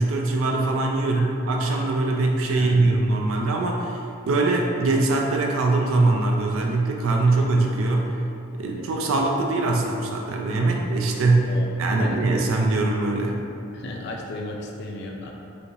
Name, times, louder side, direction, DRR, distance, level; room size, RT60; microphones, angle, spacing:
voice 1, 0.0-8.2 8.5-13.4, right 2 dB, 80° right, 1 dB, 0.4 m, -22 dB
voice 2, 2.5-3.0 7.3-7.5 7.7-7.8 8.6-8.8 10.7-10.8 11.5-12.2 13.7-15.3, left 2 dB, 55° left, 0 dB, 0.5 m, -36 dB
4.9 x 2.5 x 3.2 m, 2.6 s
head